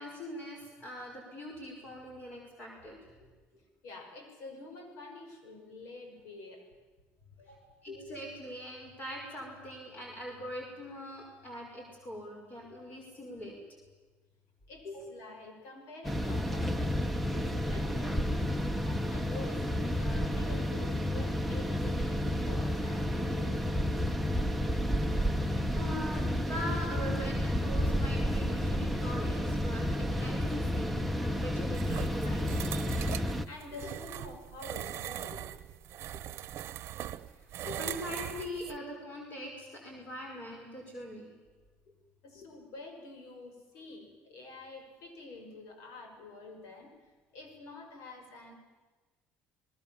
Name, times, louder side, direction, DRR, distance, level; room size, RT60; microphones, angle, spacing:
voice 1, 0.0-3.3 7.8-13.6 14.8-15.0 25.8-32.5 32.8-33.1 35.3-35.4 37.6-41.3 42.4-42.5, equal, 35° left, 0 dB, 5.8 m, -42 dB
voice 2, 3.8-6.7 7.4-7.8 14.7-18.5 18.8-23.6 33.3-35.4 39.9-40.1 42.2-48.5, left 3 dB, 75° left, 4 dB, 6.0 m, -48 dB
sound 1, 16.0-33.4, equal, ahead, 1.1 m, -31 dB
Opening the sarcophagus, 31.7-38.8, right 12 dB, 55° right, 1.0 m, -40 dB
28.5 x 19.5 x 7.3 m, 1.3 s
cardioid pair, 120°, 5 cm